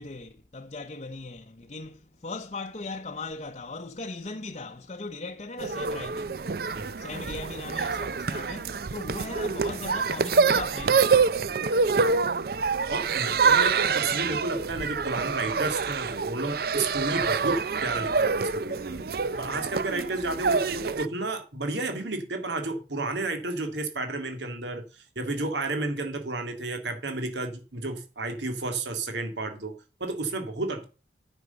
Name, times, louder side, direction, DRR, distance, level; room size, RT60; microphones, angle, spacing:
voice 1, 0.0-6.5 7.0-11.3 19.2-19.7, left 3 dB, 35° left, 0.7 m, -39 dB
sound 1, 5.6-21.1, right 5 dB, 55° right, 0.5 m, -26 dB
voice 2, 12.9-19.1 19.4-30.8, right 2 dB, 80° right, 2.1 m, -32 dB
9.5 x 6.3 x 6.8 m
head